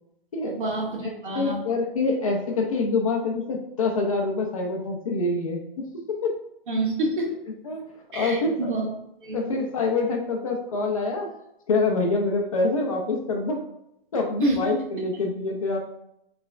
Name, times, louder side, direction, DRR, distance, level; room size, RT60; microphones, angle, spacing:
voice 1, 0.4-1.6 6.7-7.3 8.1-8.9 9.2-9.5 14.4-14.6, right 2 dB, 55° right, -1 dB, 1.5 m, -28 dB
voice 2, 1.3-6.3 7.6-7.8 8.1-8.7 9.3-11.3 11.7-13.6 14.1-15.8, left 3 dB, 35° left, 1 dB, 0.6 m, -26 dB
5.9 x 3.3 x 2.5 m, 0.79 s
hypercardioid pair, 175°, 30 cm